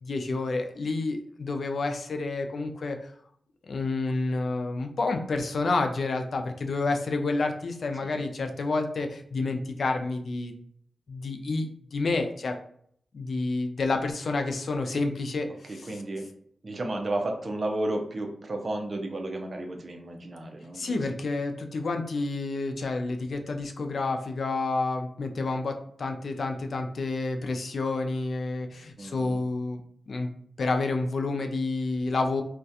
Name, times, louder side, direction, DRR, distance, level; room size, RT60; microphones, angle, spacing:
voice 1, 0.0-3.1 3.7-10.5 11.1-12.6 13.1-16.0 20.7-29.8 30.1-32.4, left 3 dB, 65° left, 5 dB, 0.3 m, -29 dB
voice 2, 15.7-16.3 16.6-21.0 29.0-29.4, right 1 dB, 45° right, 3 dB, 0.5 m, -33 dB
2.3 x 2.2 x 2.7 m, 0.63 s
wide cardioid pair, 90°, 0 cm